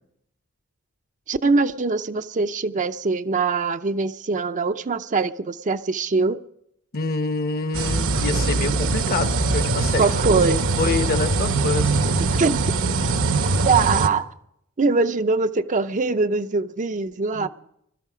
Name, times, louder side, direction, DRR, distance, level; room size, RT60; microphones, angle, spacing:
voice 1, 1.3-6.4 10.0-10.6 12.3-12.6 13.6-14.3 14.8-17.5, right 4 dB, 35° right, 9 dB, 0.5 m, -22 dB
voice 2, 6.9-10.1 10.8-11.9 17.3-17.5, left 4 dB, 45° left, 9 dB, 1.0 m, -26 dB
sound 1, 7.7-14.1, right 3 dB, 70° right, 1.0 m, -22 dB
21.0 x 12.5 x 5.0 m, 0.76 s
head